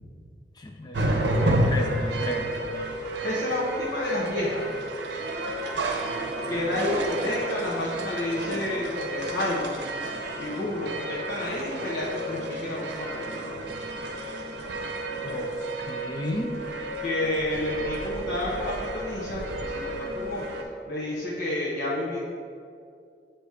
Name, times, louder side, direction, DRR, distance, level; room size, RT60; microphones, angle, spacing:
voice 1, 0.6-2.5 15.2-15.5 15.9-16.5, left 1 dB, 25° left, 1 dB, 0.4 m, -33 dB
sound 1, 0.9-20.6, right 1 dB, 80° right, 0.7 m, -31 dB
voice 2, 3.2-4.7 6.5-9.9 10.4-13.5 17.0-20.4 20.9-22.2, left 1 dB, 75° left, -8 dB, 0.9 m, -30 dB
8.0 x 3.0 x 4.9 m, 2.4 s
head